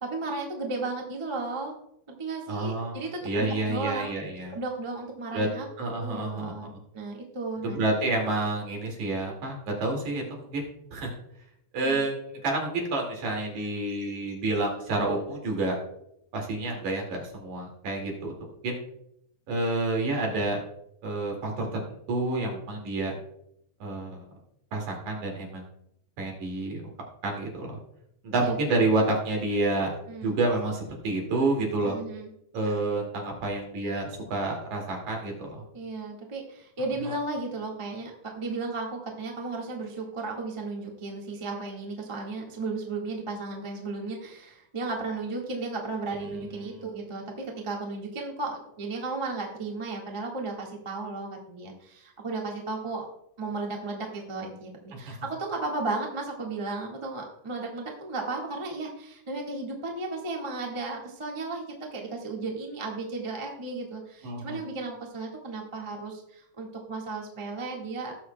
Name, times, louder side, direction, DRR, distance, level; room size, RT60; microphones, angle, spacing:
voice 1, 0.0-1.7 2.1-4.2 4.5-7.8 11.8-12.0 28.3-28.5 30.1-30.4 31.8-32.3 35.7-53.1 53.4-68.2, right 3 dB, 35° right, -1 dB, 0.4 m, -34 dB
voice 2, 2.5-4.5 5.3-5.5 5.8-6.6 7.6-11.1 11.7-15.8 16.3-18.3 18.6-18.8 19.5-20.6 21.0-23.1 23.8-24.2 24.7-25.7 26.2-26.8 27.2-27.7 28.2-29.9 30.2-32.0 32.5-35.6 46.2-46.4 46.6-46.8 64.2-64.6, right 2 dB, 65° right, 0 dB, 3.5 m, -29 dB
18.5 x 6.4 x 2.2 m, 0.75 s
omnidirectional pair, 3.7 m